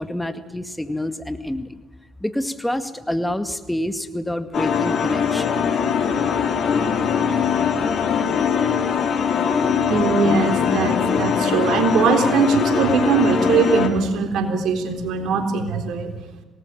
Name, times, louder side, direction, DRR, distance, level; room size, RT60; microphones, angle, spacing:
voice 1, 0.0-1.8 2.2-5.5, left 1 dB, 5° left, 9 dB, 2.1 m, -27 dB
sound 1, 4.5-13.9, left 6 dB, 55° left, 4.0 m, -21 dB
voice 2, 9.8-16.1, right 5 dB, 65° right, 6 dB, 3.7 m, -20 dB
26.5 x 19.5 x 7.4 m, 1.1 s
hypercardioid pair, 55°, 0 cm